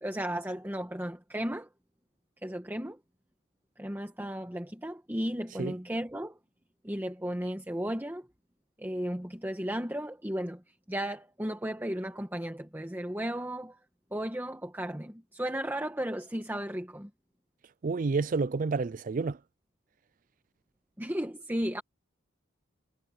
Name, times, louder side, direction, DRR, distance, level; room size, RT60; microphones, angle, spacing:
voice 1, 0.0-1.7 2.4-3.0 3.8-6.4 6.8-8.3 8.8-13.8 14.1-17.1 21.0-21.8, equal, 10° right, 1.4 m, -34 dB
voice 2, 17.8-19.4, right 4 dB, 40° right, 0.4 m, -29 dB
head